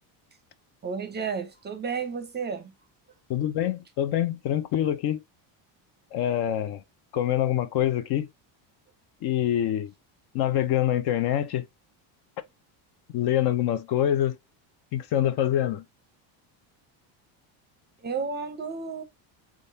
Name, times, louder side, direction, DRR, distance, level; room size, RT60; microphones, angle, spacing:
voice 1, 0.8-2.7 18.0-19.0, right 5 dB, 20° right, 0.6 m, -32 dB
voice 2, 3.3-5.2 6.1-6.8 7.1-8.3 9.2-9.9 10.3-11.7 13.1-14.4 14.9-15.8, left 11 dB, 50° left, 0.7 m, -25 dB
3.8 x 3.8 x 2.7 m
cardioid pair, 145°, 49 cm